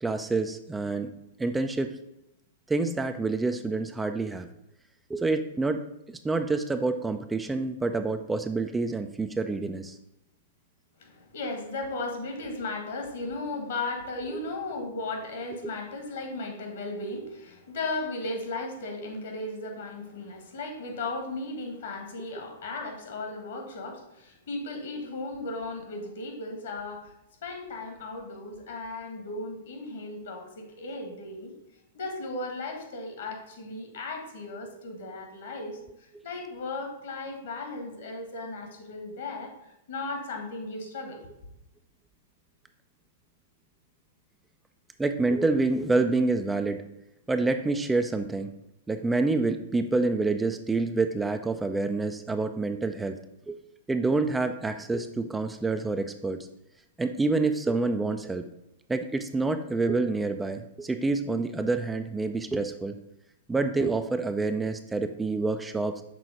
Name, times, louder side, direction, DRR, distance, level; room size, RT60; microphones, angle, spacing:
voice 1, 0.0-1.1 1.4-1.9 2.7-4.5 5.1-5.8 6.1-10.0 14.3-14.4 45.0-46.8 47.3-48.5 48.9-53.2 53.5-53.6 53.9-56.5 57.0-58.5 58.9-62.9 63.5-66.0, right 3 dB, 10° right, 7 dB, 0.3 m, -27 dB
voice 2, 11.0-27.1 27.4-31.5 31.9-39.5 39.9-41.2, left 2 dB, 60° left, 3 dB, 1.6 m, -36 dB
6.2 x 3.7 x 4.8 m, 0.86 s
figure-of-eight pair, 105°, 0 cm